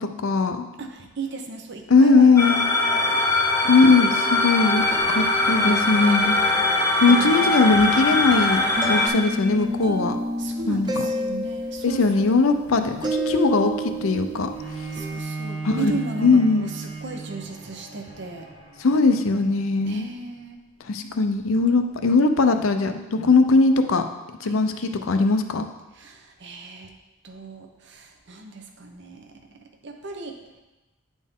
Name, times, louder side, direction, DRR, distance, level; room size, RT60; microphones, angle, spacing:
voice 1, 0.0-0.6 1.9-2.6 3.6-6.4 7.0-10.2 10.7-10.9 11.8-14.5 15.6-15.9 16.2-16.7 18.8-20.1 20.9-24.0 24.4-25.7, left 3 dB, 75° left, 7 dB, 0.5 m, -20 dB
voice 2, 0.8-3.2 10.4-12.7 14.7-18.5 19.8-20.6 24.4-24.9 25.9-26.9 27.2-30.4, right 3 dB, 55° right, 4 dB, 0.7 m, -36 dB
sound 1, 2.4-9.1, left 2 dB, 15° left, 0.9 m, -21 dB
sound 2, 4.8-15.2, right 1 dB, 20° right, 0.4 m, -31 dB
Bowed string instrument, 14.5-19.7, right 3 dB, 80° right, 1.5 m, -36 dB
9.6 x 4.2 x 3.6 m, 1.1 s
head